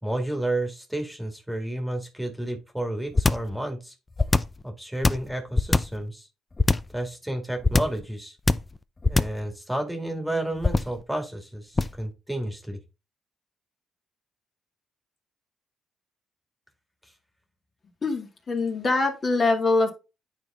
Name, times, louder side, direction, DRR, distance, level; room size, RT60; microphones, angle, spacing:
voice 1, 0.0-4.0 4.6-6.3 6.9-8.4 9.1-12.8, right 1 dB, 5° right, 4 dB, 2.0 m, -31 dB
sound 1, 3.2-3.5 4.2-4.6 5.0-6.0 6.6-7.0 7.6-8.0 8.5-8.8 9.0-9.5 10.6-11.0 11.8-12.1, left 3 dB, 20° left, 0.5 m, -21 dB
voice 2, 18.0-19.9, left 3 dB, 40° left, 2 dB, 2.3 m, -23 dB
9.5 x 4.3 x 3.6 m, 0.29 s
cardioid pair, 90°, 0 cm